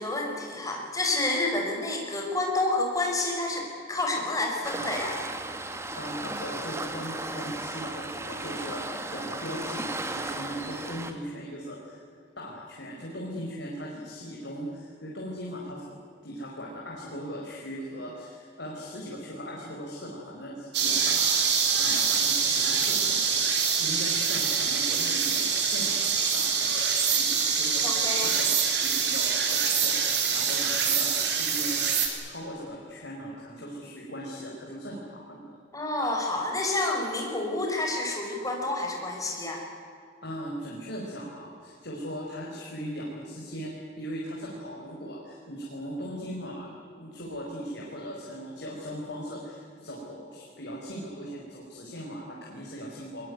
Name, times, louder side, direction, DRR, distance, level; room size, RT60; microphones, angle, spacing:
voice 1, 0.0-5.2 27.8-28.3 35.7-39.6, left 2 dB, 20° left, 0 dB, 5.2 m, -29 dB
Waves surf, 4.6-11.1, right 2 dB, 15° right, 1.6 m, -35 dB
voice 2, 6.0-12.0 12.4-15.8 16.2-21.4 21.8-23.4 23.8-28.4 28.8-35.6 40.2-43.7 44.0-53.3, equal, 70° left, -3 dB, 4.9 m, -39 dB
sound 1, 20.7-32.1, right 6 dB, 65° right, 4.1 m, -25 dB
22.5 x 21.5 x 9.5 m, 2.3 s
head